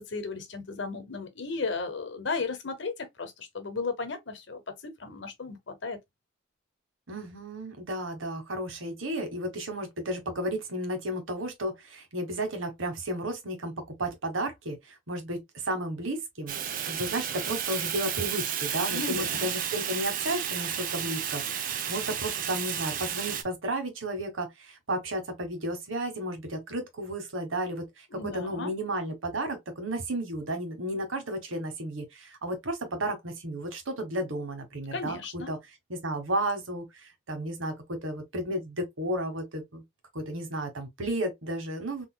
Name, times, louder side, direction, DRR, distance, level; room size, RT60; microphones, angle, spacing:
voice 1, 0.0-6.0 18.9-19.6 28.1-28.8 34.9-35.5, left 4 dB, 60° left, 0.9 m, -35 dB
voice 2, 7.1-16.6 16.8-35.6 35.9-39.8 40.1-42.1, right 1 dB, 85° right, 1.3 m, -33 dB
Fire, 16.5-23.4, right 9 dB, 45° right, 0.5 m, -32 dB
3.9 x 2.8 x 2.2 m
head